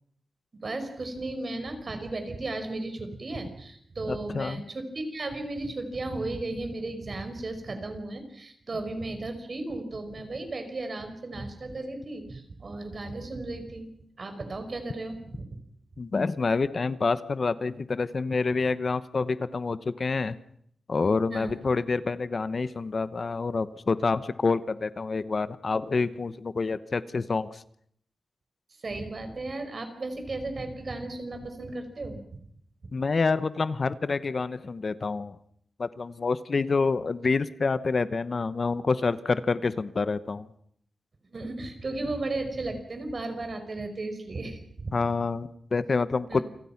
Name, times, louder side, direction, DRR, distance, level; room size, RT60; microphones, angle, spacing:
voice 1, 0.6-13.9 14.2-15.6 21.3-21.6 28.7-32.4 32.8-32.9 41.2-45.0 46.3-46.4, right 2 dB, 45° right, 7 dB, 5.3 m, -35 dB
voice 2, 4.1-4.6 16.0-20.4 20.9-27.6 32.9-35.3 35.8-40.5 44.9-46.4, left 4 dB, 45° left, 14 dB, 1.0 m, -27 dB
29.0 x 26.0 x 5.9 m, 0.69 s
wide cardioid pair, 115°, 0 cm